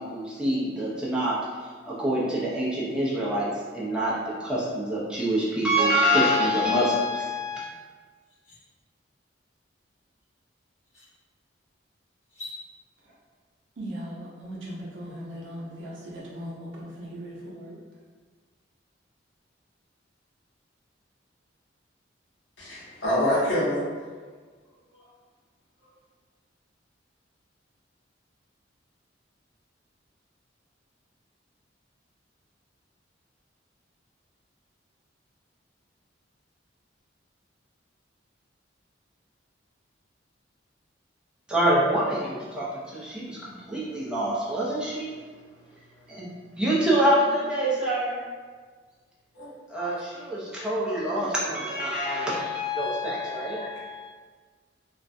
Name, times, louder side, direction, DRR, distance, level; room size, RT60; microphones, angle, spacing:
voice 1, 0.0-1.4 1.8-3.5 3.7-7.7 41.5-45.1 46.1-46.3 46.6-48.2 49.7-54.1, equal, 5° right, -8 dB, 0.5 m, -26 dB
sound 1, 7.6-7.7 8.1-8.6 10.2-10.3 10.8-11.1 12.2-12.6, left 2 dB, 40° left, 0.9 m, -44 dB
voice 2, 13.8-17.8, equal, 80° right, -5 dB, 0.6 m, -38 dB
voice 3, 22.6-23.8 24.9-25.0 49.3-49.5 49.8-49.9 52.8-52.9, left 1 dB, 70° left, -9 dB, 1.0 m, -26 dB
2.4 x 2.1 x 2.5 m, 1.5 s
head